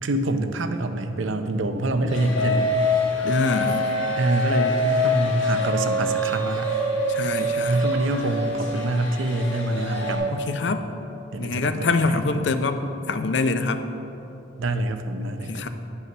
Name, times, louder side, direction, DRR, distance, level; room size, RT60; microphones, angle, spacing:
voice 1, 0.0-2.7 4.2-6.7 7.7-10.3 11.3-12.5 14.6-15.7, right 1 dB, 75° right, 8 dB, 0.6 m, -25 dB
sound 1, 1.5-5.2, equal, 40° right, 0.9 m, -43 dB
sound 2, 2.1-10.2, left 1 dB, 85° left, 1.9 m, -25 dB
voice 2, 3.2-3.9 7.1-7.8 10.3-10.8 11.4-13.9 15.5-15.7, left 3 dB, 60° left, 9 dB, 0.5 m, -25 dB
Wind instrument woodwind instrument, 4.9-9.0, right 3 dB, 20° right, 1.2 m, -47 dB
9.4 x 5.6 x 6.0 m, 2.9 s
head